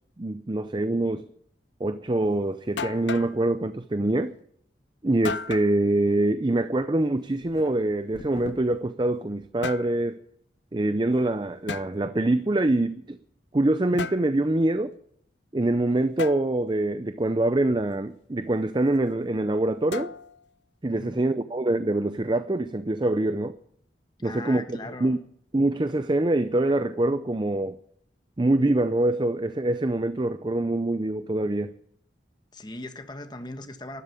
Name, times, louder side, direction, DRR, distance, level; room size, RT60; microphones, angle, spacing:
voice 1, 0.2-1.2 1.8-4.4 5.0-10.2 10.7-13.2 13.5-14.9 15.5-20.1 20.8-23.5 24.2-25.2 25.5-27.8 28.4-31.7, right 2 dB, 25° right, 0.5 m, -25 dB
sound 1, 2.3-2.4 2.8-3.4 5.2-5.7 7.4-8.9 9.4-9.9 11.7-11.9 14.0-14.3 16.2-16.4 19.9-20.5, left 5 dB, 80° left, 0.6 m, -35 dB
voice 2, 24.2-25.2 32.5-34.0, left 2 dB, 25° left, 1.3 m, -39 dB
13.0 x 11.5 x 8.3 m
head